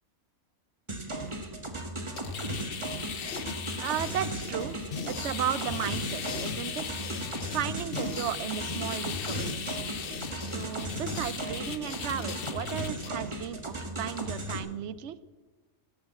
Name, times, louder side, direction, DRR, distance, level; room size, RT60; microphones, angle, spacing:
sound 1, 0.9-14.6, right 1 dB, 20° right, 1.5 m, -36 dB
sound 2, 2.0-13.1, left 7 dB, 50° left, 0.8 m, -38 dB
voice 1, 3.8-4.7 5.1-6.8 7.5-9.8 10.3-15.2, right 10 dB, 60° right, 15 dB, 0.9 m, -35 dB
18.0 x 7.2 x 7.5 m, 1.3 s
omnidirectional pair, 1.4 m